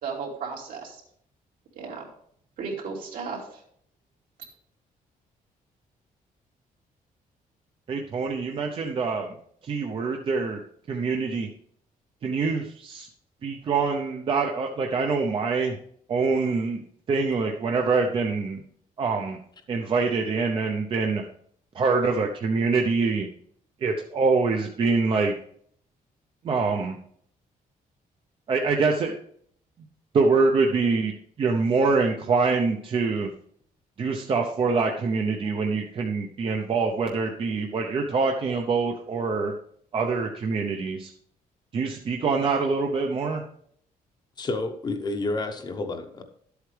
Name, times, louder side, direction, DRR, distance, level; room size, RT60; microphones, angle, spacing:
voice 1, 0.0-1.0 1.7-2.1 2.6-3.6, right 5 dB, 75° right, -2 dB, 3.0 m, -34 dB
voice 2, 7.9-9.4 9.6-10.6 10.9-11.5 12.2-13.1 13.4-15.8 16.1-16.8 17.1-18.6 19.0-19.4 19.7-21.2 21.7-23.3 23.8-25.3 26.4-27.0 28.5-29.2 30.1-31.1 31.4-33.3 34.0-39.5 39.9-41.1 41.7-43.4, right 4 dB, 35° right, 2 dB, 0.7 m, -25 dB
voice 3, 44.4-46.2, left 2 dB, 30° left, 6 dB, 0.9 m, -30 dB
12.0 x 8.1 x 3.3 m, 0.64 s
cardioid pair, 180°, 15 cm